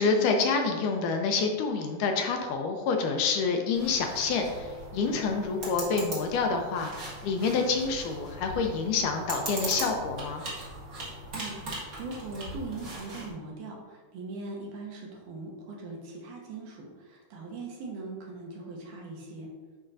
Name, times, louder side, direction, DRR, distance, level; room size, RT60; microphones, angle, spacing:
voice 1, 0.0-6.9 7.2-10.4, left 4 dB, 80° left, 3 dB, 2.1 m, -27 dB
sound 1, 3.7-13.3, right 1 dB, 40° right, 1.2 m, -40 dB
voice 2, 11.3-19.5, right 3 dB, 75° right, -2 dB, 2.5 m, -40 dB
10.0 x 4.3 x 2.5 m, 1.4 s
omnidirectional pair, 3.8 m